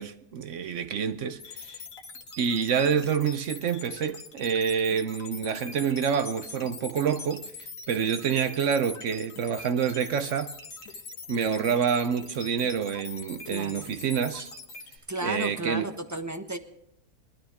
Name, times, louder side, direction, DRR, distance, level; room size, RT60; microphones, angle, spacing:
voice 1, 0.0-1.8 2.4-7.5 7.9-10.5 11.3-14.5 15.2-15.9, right 7 dB, 60° right, 0.9 m, -27 dB
sound 1, 1.4-15.0, left 4 dB, 60° left, 1.8 m, -43 dB
voice 2, 13.5-13.8 15.1-16.6, right 1 dB, 15° right, 0.8 m, -33 dB
21.0 x 13.0 x 3.5 m
omnidirectional pair, 1.7 m